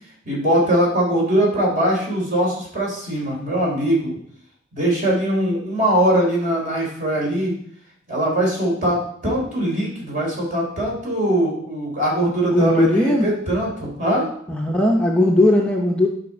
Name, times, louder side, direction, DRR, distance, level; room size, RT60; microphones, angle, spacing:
voice 1, 0.2-4.1 4.7-7.6 8.1-14.2, right 1 dB, 40° right, -3 dB, 3.5 m, -21 dB
voice 2, 12.5-13.3 14.5-16.1, left 1 dB, 5° left, -1 dB, 0.7 m, -18 dB
11.0 x 5.5 x 4.3 m, 0.64 s
head